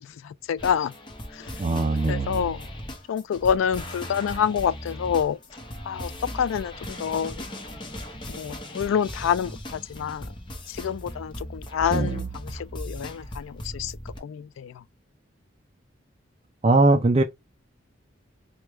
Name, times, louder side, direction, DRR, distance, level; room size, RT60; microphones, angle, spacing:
voice 1, 0.2-0.9 1.4-1.5 2.1-2.6 3.1-5.4 5.9-7.5 8.3-10.3 10.7-13.9 14.2-14.8, left 8 dB, 85° left, 0.3 m, -27 dB
sound 1, 0.6-14.2, left 1 dB, 25° left, 0.8 m, -38 dB
voice 2, 1.6-2.4 11.9-12.3 16.6-17.2, right 2 dB, 30° right, 0.4 m, -21 dB
4.7 x 2.2 x 3.1 m
head